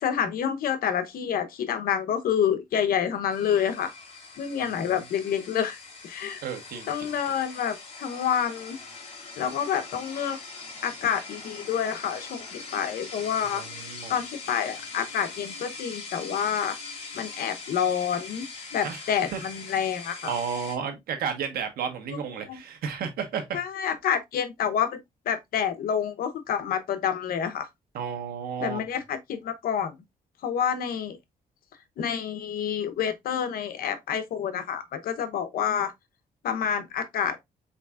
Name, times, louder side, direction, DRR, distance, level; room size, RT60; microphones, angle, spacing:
voice 1, 0.0-3.9 4.4-5.8 6.0-6.4 6.9-8.8 9.4-10.4 10.8-13.6 14.1-16.8 17.1-18.5 18.7-20.3 22.5-22.6 23.5-24.9 25.3-27.7 28.6-29.9 30.4-31.2 32.0-35.9 36.4-37.4, left 8 dB, 75° left, 0.9 m, -28 dB
sound 1, 3.3-20.8, left 4 dB, 45° left, 2.0 m, -42 dB
voice 2, 6.4-7.2 13.4-14.2 18.8-19.0 19.3-19.4 20.2-23.6 27.9-28.8, right 7 dB, 85° right, 1.3 m, -32 dB
4.9 x 4.1 x 2.4 m
cardioid pair, 105°, 15 cm